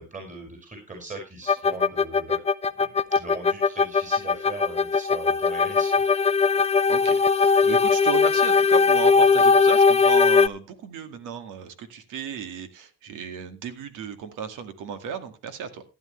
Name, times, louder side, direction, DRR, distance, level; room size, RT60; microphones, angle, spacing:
voice 1, 0.0-2.4 2.8-5.9, right 3 dB, 25° right, 5.5 m, -39 dB
sound 1, 1.5-10.5, left 5 dB, 20° left, 0.6 m, -19 dB
voice 2, 6.9-15.8, right 7 dB, 90° right, 2.1 m, -34 dB
15.0 x 10.5 x 3.2 m
cardioid pair, 90°, 30 cm